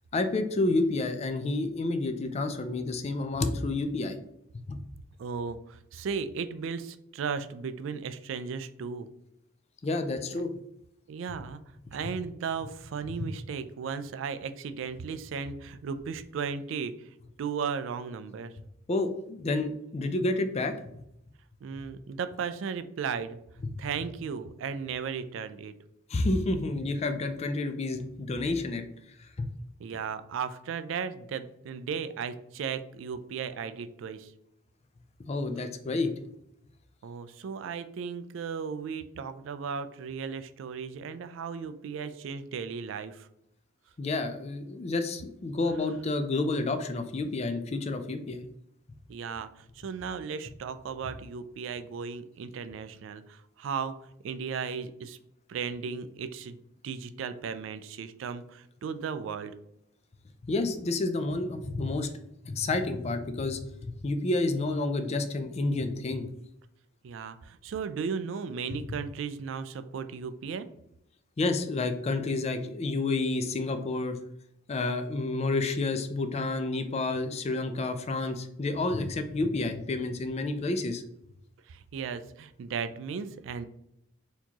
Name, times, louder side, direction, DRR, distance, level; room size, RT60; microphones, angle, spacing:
voice 1, 0.1-4.2 4.7-4.8 9.8-10.5 18.9-20.7 26.1-28.8 29.4-29.5 35.3-36.1 44.0-48.4 60.5-62.1 62.4-66.3 71.4-74.2 74.7-81.0, left 2 dB, 35° left, 8 dB, 0.4 m, -29 dB
voice 2, 5.2-9.1 11.1-17.1 17.4-18.5 21.6-23.4 23.8-25.7 29.8-34.3 37.0-43.3 49.1-54.0 54.2-55.2 55.5-59.6 67.0-70.7 81.7-83.7, right 6 dB, 70° right, 12 dB, 0.3 m, -36 dB
4.3 x 2.9 x 2.8 m, 0.77 s
head